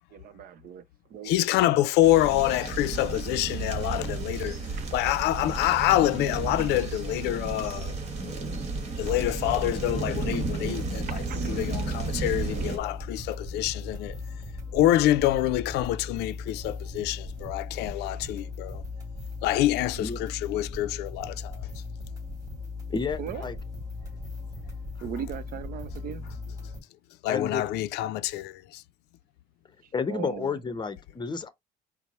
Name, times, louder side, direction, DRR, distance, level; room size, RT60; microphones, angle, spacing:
voice 1, 0.1-0.8 1.1-1.3 4.8-4.9 11.1-11.5 23.2-23.5 25.0-26.3 30.1-30.6, right 9 dB, 60° right, 0.6 m, -38 dB
voice 2, 1.2-4.6 4.9-7.9 9.0-11.2 11.5-14.2 14.7-18.8 19.4-21.7 27.2-28.8, left 14 dB, 85° left, 0.4 m, -26 dB
sound 1, 2.0-12.8, right 3 dB, 40° right, 1.3 m, -33 dB
sound 2, 9.0-26.8, left 3 dB, 20° right, 2.2 m, -38 dB
voice 3, 22.9-23.6 27.3-27.6 29.9-31.5, left 5 dB, 25° left, 0.7 m, -31 dB
4.4 x 2.1 x 4.0 m
cardioid pair, 110°, 17 cm